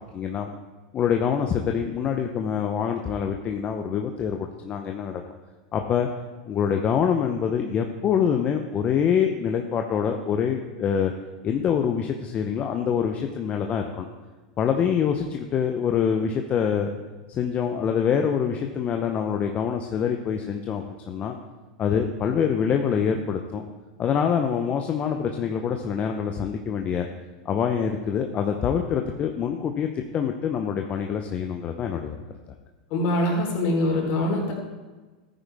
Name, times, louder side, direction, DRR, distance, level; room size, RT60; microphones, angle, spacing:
voice 1, 0.1-0.5 0.9-5.2 5.7-6.1 6.5-11.1 11.4-14.1 14.6-16.9 17.3-21.3 21.8-23.7 24.0-27.1 27.4-32.2, left 7 dB, 35° left, 4 dB, 0.9 m, -25 dB
voice 2, 32.9-34.5, left 1 dB, 50° left, -1 dB, 4.3 m, -23 dB
13.5 x 9.3 x 3.6 m, 1.3 s
hypercardioid pair, 100°, 4 cm